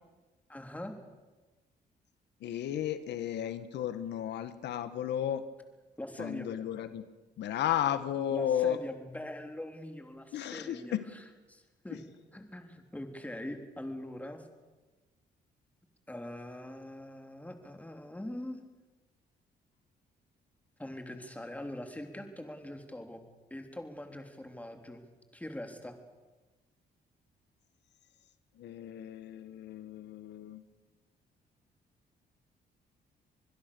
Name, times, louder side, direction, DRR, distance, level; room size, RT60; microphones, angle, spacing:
voice 1, 0.5-0.9 6.0-6.5 8.3-12.0 12.3-14.4 16.1-18.6 20.8-23.2 23.5-25.0 25.3-26.0, left 1 dB, 10° left, 5 dB, 3.4 m, -42 dB
voice 2, 2.4-5.4 6.2-7.0 7.4-8.8 10.3-11.0 11.9-12.0 28.6-30.6, left 10 dB, 85° left, 11 dB, 1.4 m, -33 dB
25.5 x 21.0 x 6.9 m, 1.2 s
cardioid pair, 105°, 18 cm